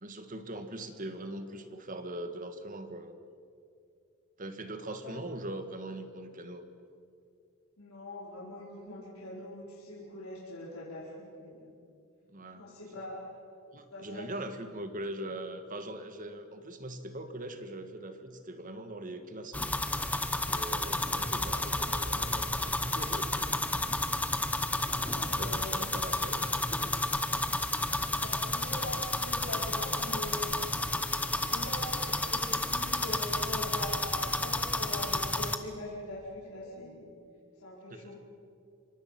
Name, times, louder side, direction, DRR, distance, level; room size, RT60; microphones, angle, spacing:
voice 1, 0.0-3.2 4.4-6.7 12.3-12.7 13.7-19.9 20.4-23.6 25.2-27.0 37.9-38.2, right 1 dB, 40° right, 8 dB, 1.7 m, -41 dB
voice 2, 7.8-11.8 12.5-13.2 13.9-14.3 14.5-14.6 24.8-25.8 28.1-30.7 31.4-37.1 37.6-38.2, left 1 dB, 90° left, -6 dB, 4.8 m, -42 dB
sound 1, 19.5-35.6, left 2 dB, 5° left, 0.9 m, -31 dB
27.0 x 24.5 x 6.0 m, 2.5 s
head